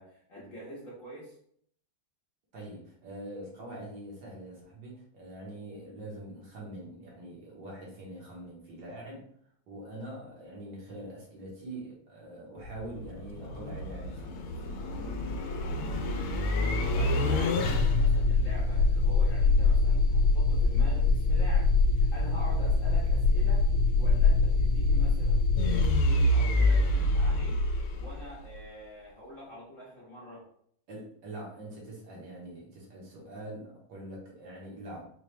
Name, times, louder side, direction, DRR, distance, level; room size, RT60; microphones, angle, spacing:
voice 1, 0.0-1.3 16.1-16.6 16.9-27.6 27.9-30.4, left 1 dB, 45° left, -7 dB, 1.2 m, -45 dB
voice 2, 2.5-9.2 9.7-14.7 30.9-35.1, right 1 dB, 65° right, -4 dB, 1.7 m, -44 dB
sound 1, 12.6-28.6, left 3 dB, 80° left, 1.4 m, -25 dB
4.7 x 2.3 x 3.1 m, 0.65 s
omnidirectional pair, 2.3 m